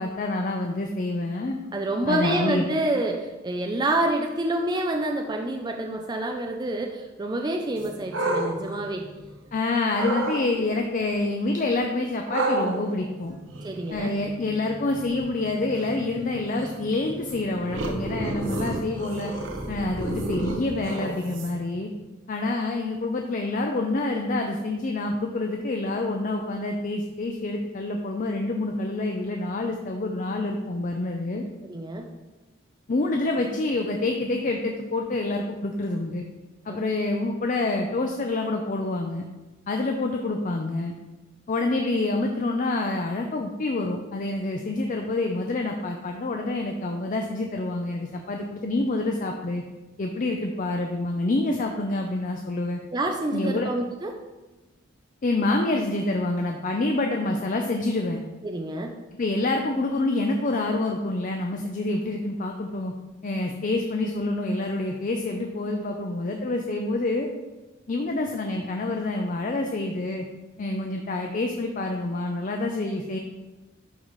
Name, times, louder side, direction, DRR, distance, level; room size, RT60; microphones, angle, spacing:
voice 1, 0.0-1.6 2.1-2.7 9.5-13.4 13.9-19.3 19.7-21.9 22.3-31.4 32.9-36.2 36.7-39.2 39.7-40.9 41.5-49.6 50.0-52.8 53.3-53.7 55.2-58.2 59.2-62.9 63.2-67.3 67.9-70.3 70.6-73.2, left 2 dB, 40° left, 3 dB, 0.5 m, -27 dB
voice 2, 1.7-9.1 13.6-14.1 31.6-32.1 36.7-36.8 52.9-54.1 58.4-58.9, right 1 dB, 20° right, 2 dB, 0.4 m, -27 dB
Surprised cat purring, 7.8-9.5 9.9-10.4 12.3-21.8, right 2 dB, 70° right, 1.0 m, -32 dB
11.0 x 4.1 x 3.1 m, 1.2 s
head